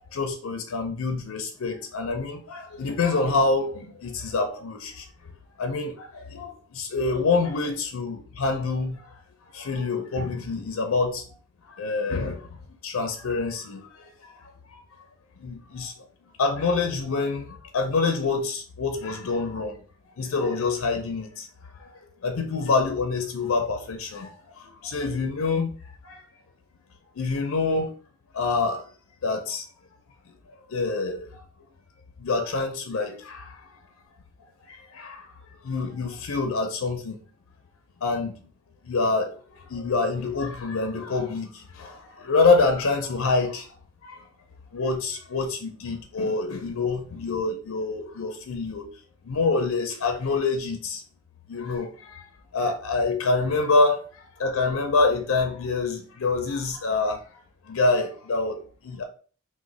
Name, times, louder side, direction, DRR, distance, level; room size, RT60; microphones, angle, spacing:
voice 1, 0.1-5.3 5.6-9.1 9.5-11.3 11.8-12.6 12.8-14.8 15.4-15.9 16.4-19.8 20.2-21.5 21.7-21.9 22.2-25.7 26.0-26.3 27.2-27.9 28.3-28.8 29.2-29.6 30.7-31.4 32.2-33.7 34.6-35.3 35.6-37.2 38.0-38.3 38.8-43.7 44.0-44.3 44.7-48.9 49.2-51.0 51.5-52.3 52.5-54.0 54.4-57.2 57.7-59.0, left 3 dB, 80° left, 0.5 m, -26 dB
3.0 x 2.1 x 3.8 m
head